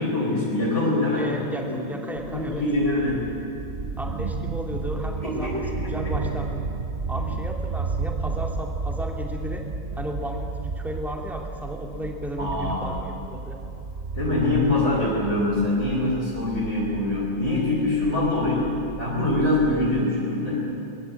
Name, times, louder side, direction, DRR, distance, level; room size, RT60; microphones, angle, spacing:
voice 1, 0.0-1.9 2.3-3.3 5.2-6.1 12.4-12.9 14.1-20.7, left 2 dB, 60° left, -5 dB, 4.8 m, -24 dB
voice 2, 1.2-2.6 4.0-6.6 7.1-9.6 10.0-13.6, equal, ahead, 0 dB, 2.8 m, -34 dB
sound 1, 2.2-20.0, right 4 dB, 45° right, 1.3 m, -33 dB
23.0 x 20.5 x 8.5 m, 2.9 s
omnidirectional pair, 1.4 m